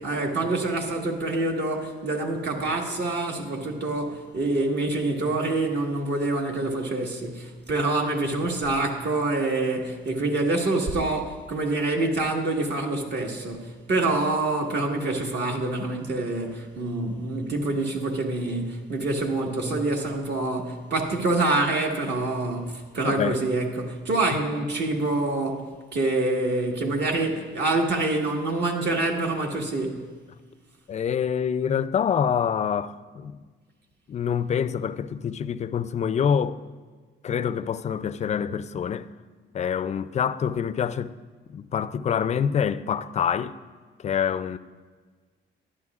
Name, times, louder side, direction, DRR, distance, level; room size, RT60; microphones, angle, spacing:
voice 1, 0.0-30.0, right 2 dB, 60° right, 1.5 m, -26 dB
voice 2, 23.0-23.4 30.9-33.4 34.1-36.6 37.2-39.1 39.5-41.2 41.5-43.6 44.0-44.6, left 7 dB, 35° left, 0.4 m, -26 dB
12.5 x 11.0 x 2.4 m
cardioid pair, 90°, 20 cm